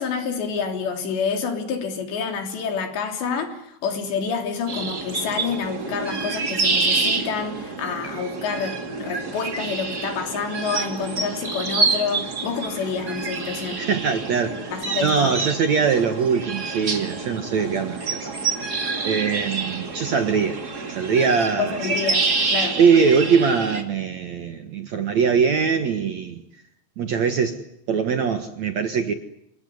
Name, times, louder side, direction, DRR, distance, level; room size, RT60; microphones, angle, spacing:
voice 1, 0.0-13.8 14.7-15.4 21.6-22.8, left 5 dB, 80° left, 5.5 m, -28 dB
sound 1, 4.7-23.8, right 4 dB, 30° right, 2.3 m, -27 dB
voice 2, 13.8-14.7 15.0-18.3 19.0-20.6 20.9-21.8 22.8-26.4 27.0-27.6 27.9-29.1, right 6 dB, 55° right, 2.1 m, -22 dB
28.0 x 21.0 x 9.5 m
omnidirectional pair, 5.0 m